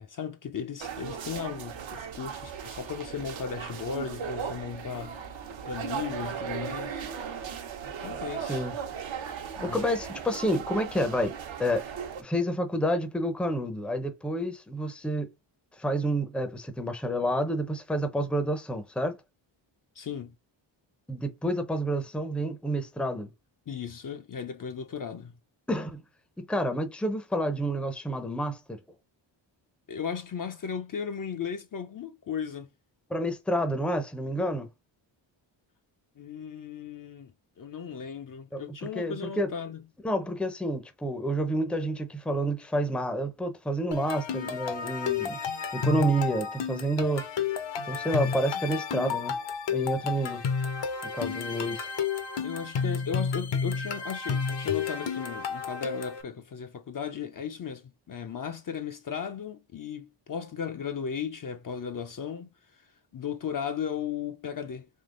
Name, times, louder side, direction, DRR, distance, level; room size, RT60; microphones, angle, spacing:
voice 1, 0.0-5.2 5.7-7.1 8.0-8.7 9.6-9.9 20.0-20.4 23.7-25.4 29.9-32.7 36.2-37.3 37.6-39.8 52.4-64.9, left 7 dB, 45° left, 0.6 m, -36 dB
sound 1, 0.8-12.2, right 7 dB, 70° right, 0.9 m, -37 dB
voice 2, 9.6-11.9 12.2-15.3 15.8-19.1 21.1-23.3 25.7-26.0 26.4-28.8 33.1-34.7 38.5-38.6 38.9-39.5 40.0-45.4 45.7-47.3 47.9-49.3 49.7-50.4 51.1-51.9, right 1 dB, ahead, 0.6 m, -29 dB
sound 2, 43.9-56.2, left 6 dB, 60° left, 0.9 m, -31 dB
3.7 x 3.2 x 3.8 m
wide cardioid pair, 145°, 48 cm